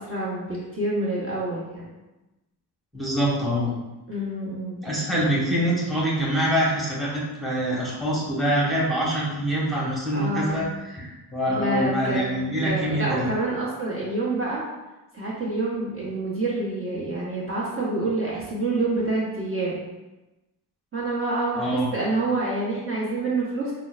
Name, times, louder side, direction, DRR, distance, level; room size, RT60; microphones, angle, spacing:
voice 1, 0.0-1.8 4.1-5.0 10.1-10.6 11.5-12.3 12.6-14.6 15.1-19.8 20.9-23.7, right 2 dB, 30° right, -6 dB, 1.2 m, -27 dB
voice 2, 2.9-3.7 4.8-13.3 21.6-21.9, equal, ahead, -7 dB, 1.3 m, -25 dB
5.6 x 2.2 x 2.5 m, 1.1 s
supercardioid pair, 60°, 43 cm